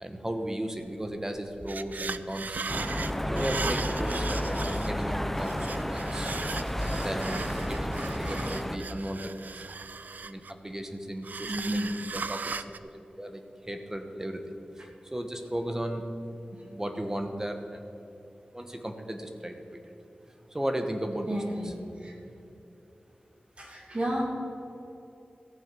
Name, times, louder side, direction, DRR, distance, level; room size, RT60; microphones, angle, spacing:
voice 1, 0.0-2.8 3.3-6.3 7.0-9.7 10.2-12.7 13.2-16.0 16.7-17.9 18.5-19.8 20.3-21.4, right 1 dB, 15° right, 6 dB, 1.2 m, -35 dB
sound 1, 1.0-1.1 1.4-5.0 5.4-10.7 11.2-12.8, right 4 dB, 65° right, 0.4 m, -38 dB
sound 2, 2.7-8.8, equal, 10° left, 0.7 m, -31 dB
voice 2, 11.5-11.9 16.4-16.7 21.3-22.1 23.6-24.2, right 1 dB, 40° right, -1 dB, 2.7 m, -32 dB
15.0 x 7.1 x 6.1 m, 2.9 s
wide cardioid pair, 80°, 3 cm